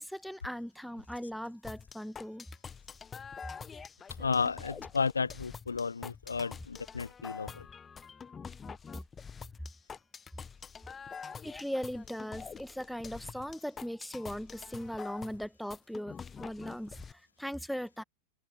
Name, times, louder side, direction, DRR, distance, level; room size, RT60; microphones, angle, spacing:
voice 1, 0.0-2.5 11.4-18.0, equal, ahead, 1.8 m, -39 dB
sound 1, 1.6-17.1, left 6 dB, 20° left, 1.0 m, -46 dB
voice 2, 4.2-7.6, left 5 dB, 75° left, 0.7 m, -33 dB
figure-of-eight pair, 90°, 0 cm